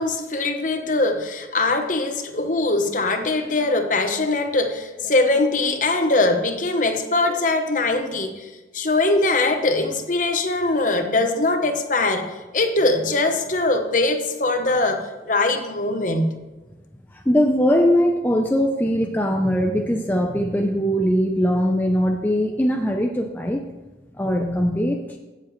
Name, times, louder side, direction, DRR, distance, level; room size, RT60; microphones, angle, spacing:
voice 1, 0.0-16.3, left 2 dB, 45° left, 6 dB, 1.0 m, -22 dB
voice 2, 17.1-23.6 24.2-25.2, equal, 10° left, 2 dB, 0.5 m, -21 dB
16.0 x 7.1 x 3.2 m, 1.2 s
head